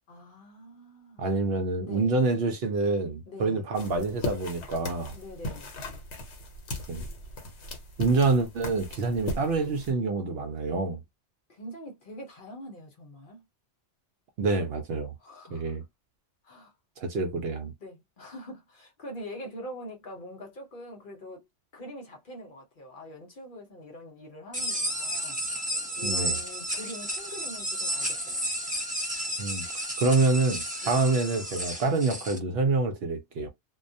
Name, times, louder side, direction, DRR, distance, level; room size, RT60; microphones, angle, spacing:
voice 1, 0.1-1.3 1.8-2.2 3.3-3.7 5.1-5.7 11.5-13.4 15.2-15.8 16.4-16.7 17.8-21.5 21.7-25.4 26.0-28.5 30.8-31.0, equal, 50° left, 0.8 m, -44 dB
voice 2, 1.2-5.1 6.9-7.0 8.0-11.0 14.4-15.1 15.5-15.8 17.0-17.7 26.0-26.4 29.4-29.7 30.0-33.5, right 3 dB, 65° right, 0.7 m, -27 dB
sound 1, 3.7-9.9, left 2 dB, 75° left, 1.0 m, -38 dB
sound 2, 24.5-32.4, equal, 10° right, 0.5 m, -32 dB
2.2 x 2.1 x 2.6 m
omnidirectional pair, 1.2 m